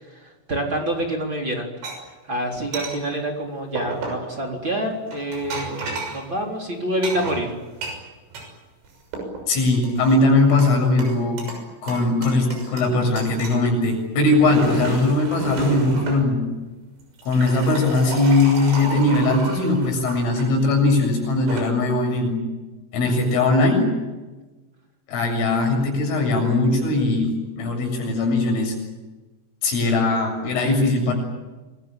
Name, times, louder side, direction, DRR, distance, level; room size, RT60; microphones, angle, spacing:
voice 1, 0.0-1.7 2.2-7.5, right 1 dB, 25° right, 1 dB, 4.1 m, -27 dB
sound 1, 1.8-2.0 2.7-3.0 3.8-4.3 5.1-6.2 7.0-8.5 8.9-9.5 9.8-10.7 11.0-11.6 11.9-12.9 13.2-13.6 14.2-16.3 17.0-20.5 21.3-21.6, right 3 dB, 75° right, 8.9 m, -32 dB
voice 2, 9.5-11.5 11.8-16.5 17.2-22.4 22.9-23.9 25.1-28.8 29.6-31.1, left 2 dB, 85° left, 3 dB, 9.8 m, -20 dB
28.5 x 21.5 x 9.1 m, 1.2 s
omnidirectional pair, 5.7 m